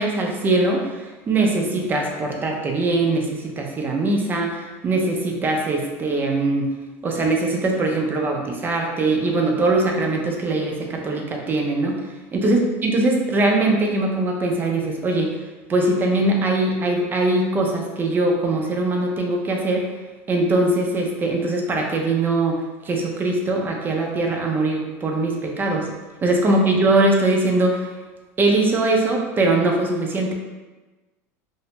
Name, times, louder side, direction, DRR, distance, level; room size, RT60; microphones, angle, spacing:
voice 1, 0.0-6.7 7.0-12.0 12.3-15.4 15.7-19.9 20.3-25.9 26.2-27.9 28.4-30.3, right 2 dB, 25° right, 0 dB, 0.5 m, -21 dB
2.5 x 2.1 x 2.9 m, 1.2 s
supercardioid pair, 110°, 8 cm